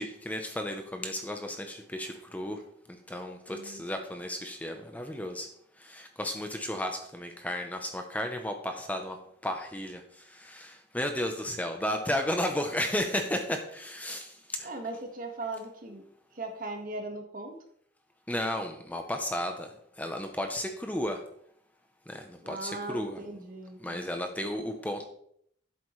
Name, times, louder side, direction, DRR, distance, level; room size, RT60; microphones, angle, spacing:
voice 1, 0.0-2.6 2.9-5.5 5.8-14.7 18.3-19.7 20.0-21.2 22.1-23.2 23.8-25.0, left 1 dB, 10° left, 5 dB, 0.7 m, -34 dB
voice 2, 3.5-3.8 14.6-16.0 16.3-17.6 22.4-24.3, right 2 dB, 50° right, 3 dB, 1.7 m, -39 dB
11.5 x 8.2 x 3.2 m, 0.68 s
head